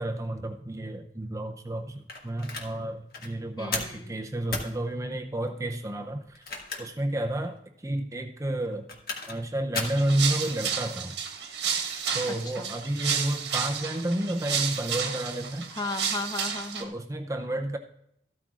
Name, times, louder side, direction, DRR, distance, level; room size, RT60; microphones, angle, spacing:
voice 1, 0.0-6.5 6.8-7.6 7.8-8.9 9.3-11.2 12.1-15.7 16.8-17.8, right 1 dB, 20° right, 4 dB, 0.5 m, -31 dB
sound 1, 2.1-2.7 3.1-3.3 3.7-4.0 4.5-4.7 6.3-7.0 7.4-7.5 8.6-9.4 9.7-10.0, left 3 dB, 55° left, 1.5 m, -34 dB
voice 2, 3.6-4.1 12.3-12.7 15.8-16.9, left 2 dB, 25° left, 6 dB, 0.7 m, -35 dB
sound 2, 9.8-16.8, right 7 dB, 75° right, 1.4 m, -31 dB
14.0 x 12.5 x 2.4 m, 0.74 s
head